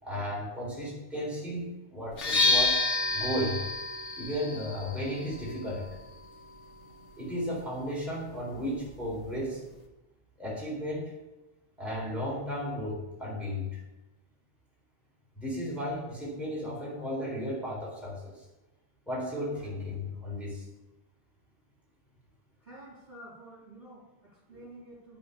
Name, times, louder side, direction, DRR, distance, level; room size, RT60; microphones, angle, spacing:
voice 1, 0.0-2.8 3.1-3.6 4.1-5.9 7.2-9.6 10.4-11.1 11.8-13.8 15.4-18.4 19.1-20.6, equal, ahead, -5 dB, 4.0 m, -34 dB
sound 1, 2.1-9.9, left 3 dB, 90° left, 1.5 m, -32 dB
voice 2, 22.6-25.2, right 1 dB, 50° right, -6 dB, 4.2 m, -50 dB
9.1 x 8.5 x 6.9 m, 1.0 s
omnidirectional pair, 1.2 m